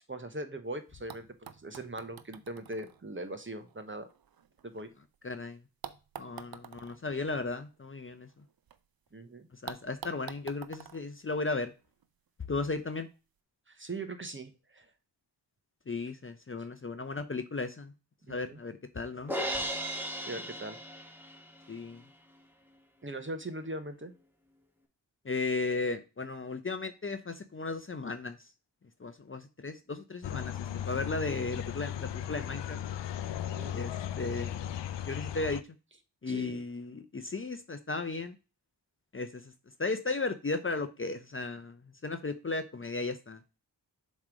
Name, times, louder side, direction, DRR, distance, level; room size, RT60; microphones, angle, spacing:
voice 1, 0.0-4.1 4.6-4.9 9.1-9.5 13.7-14.9 18.3-18.6 20.2-20.8 23.0-24.1 33.5-33.8 36.3-36.6, right 2 dB, 25° right, 9 dB, 1.0 m, -40 dB
sound 1, 0.6-0.7 1.1-5.2 5.8-8.8 9.1-9.2 9.7-12.1 13.0-13.1, right 8 dB, 55° right, 0.7 m, -49 dB
voice 2, 5.2-5.6 6.2-8.3 9.5-11.7 12.5-13.1 15.9-17.9 18.3-19.3 21.7-22.0 25.2-28.4 29.0-32.8 33.7-34.6 35.0-35.6 36.2-38.4 39.1-39.5 39.8-43.4, left 3 dB, 30° left, 9 dB, 0.7 m, -35 dB
Crash cymbal, 19.3-21.6, equal, 5° right, 1.5 m, -35 dB
sound 2, 30.2-35.6, left 10 dB, 70° left, 0.6 m, -36 dB
7.2 x 3.2 x 5.1 m, 0.31 s
cardioid pair, 45°, 45 cm